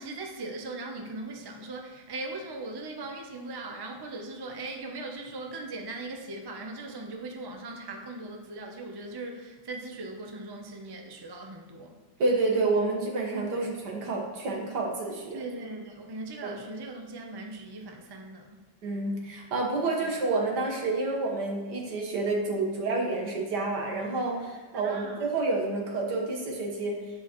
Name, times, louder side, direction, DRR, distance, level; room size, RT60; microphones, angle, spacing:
voice 1, 0.0-12.0 13.5-13.7 15.3-18.7 20.0-20.1 24.8-25.3, right 2 dB, 35° right, 2 dB, 0.3 m, -39 dB
voice 2, 12.2-15.4 16.4-16.6 18.8-27.0, right 3 dB, 70° right, 0 dB, 2.0 m, -29 dB
9.9 x 7.9 x 3.1 m, 1.4 s
omnidirectional pair, 1.9 m